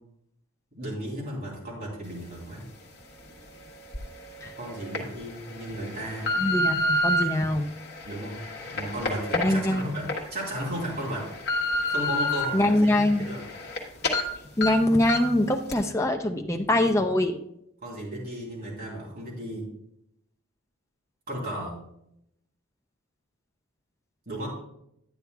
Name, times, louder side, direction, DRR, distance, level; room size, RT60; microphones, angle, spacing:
voice 1, 0.8-2.6 4.6-6.3 8.0-8.4 8.7-11.3 11.9-13.4 16.5-16.9 17.8-19.7 21.3-21.8 24.2-24.5, right 1 dB, 40° right, -5 dB, 3.2 m, -35 dB
sound 1, 3.9-4.0 4.7-5.0 5.6-7.2 7.9-10.2 10.6-10.7 11.1-12.4 12.9-13.8 14.0-14.2 14.6-14.7 15.1-15.4 15.7-15.8, left 1 dB, 45° left, 1.3 m, -27 dB
voice 2, 6.4-7.7 9.4-9.9 12.5-13.3 14.6-17.4, left 1 dB, 15° left, 4 dB, 0.4 m, -23 dB
11.0 x 9.2 x 2.3 m, 0.77 s
head